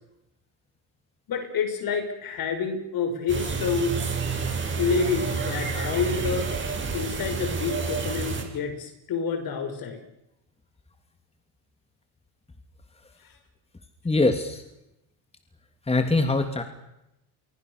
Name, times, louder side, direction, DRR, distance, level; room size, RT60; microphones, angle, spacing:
voice 1, 1.3-3.9 4.8-6.5 6.9-10.0, left 5 dB, 55° left, 7 dB, 6.6 m, -28 dB
sound 1, 3.3-8.4, right 5 dB, 25° right, 8.0 m, -29 dB
voice 2, 14.0-14.6 15.9-16.6, left 2 dB, 15° left, 7 dB, 2.9 m, -23 dB
29.0 x 23.5 x 6.8 m, 0.87 s
supercardioid pair, 90°, 43 cm